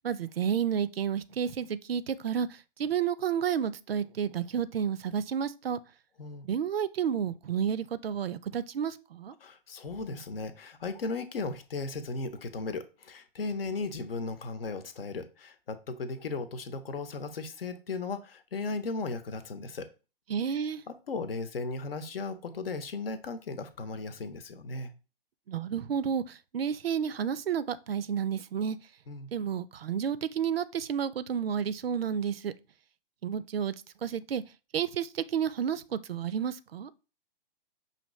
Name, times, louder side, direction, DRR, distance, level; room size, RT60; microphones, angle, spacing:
voice 1, 0.0-2.5 2.8-5.8 6.4-9.3 20.3-20.8 25.5-28.8 29.3-32.5 33.2-33.7 34.0-34.4 34.7-36.9, right 8 dB, 80° right, 0.5 m, -31 dB
voice 2, 9.4-19.9 20.9-24.9 29.1-29.3, left 3 dB, 75° left, 0.8 m, -36 dB
5.7 x 2.7 x 3.1 m
figure-of-eight pair, 115°, 29 cm